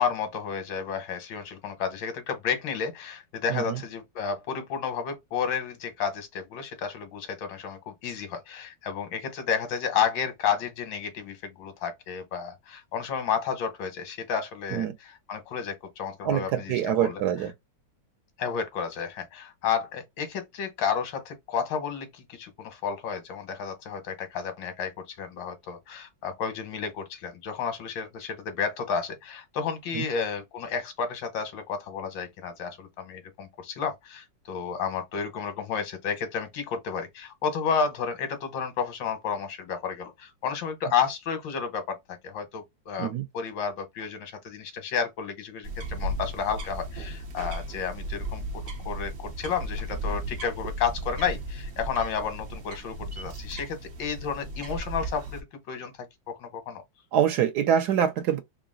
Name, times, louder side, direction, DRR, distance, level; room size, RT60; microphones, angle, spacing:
voice 1, 0.0-17.2 18.4-48.4 48.8-55.9 56.3-56.8, left 6 dB, 90° left, 1.7 m, -31 dB
voice 2, 3.5-3.8 14.7-14.9 16.2-17.5 29.9-30.1 43.0-43.2 57.1-58.4, right 9 dB, 70° right, 1.1 m, -25 dB
sound 1, 45.6-55.4, right 1 dB, 45° right, 0.8 m, -35 dB
3.8 x 2.2 x 3.7 m
omnidirectional pair, 2.0 m